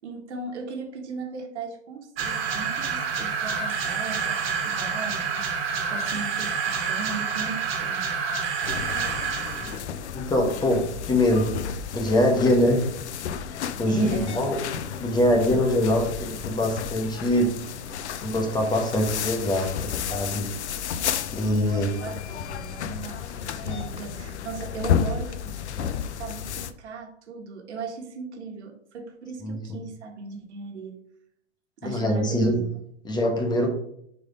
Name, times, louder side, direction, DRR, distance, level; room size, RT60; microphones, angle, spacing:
voice 1, 0.0-8.0 9.9-10.0 11.4-11.6 13.9-14.4 21.3-31.0 31.8-32.8, right 4 dB, 75° right, 4 dB, 1.4 m, -37 dB
sound 1, 2.2-9.8, right 6 dB, 60° right, 1.7 m, -28 dB
sound 2, 8.6-26.7, left 8 dB, 75° left, 0.7 m, -32 dB
voice 2, 10.1-11.5 11.9-12.9 13.8-14.6 15.0-17.6 18.2-20.5 21.3-21.9 29.4-29.8 31.8-32.6 33.0-33.7, left 1 dB, 10° left, 2 dB, 1.1 m, -23 dB
4.9 x 4.3 x 5.2 m, 0.70 s
hypercardioid pair, 130°, 34 cm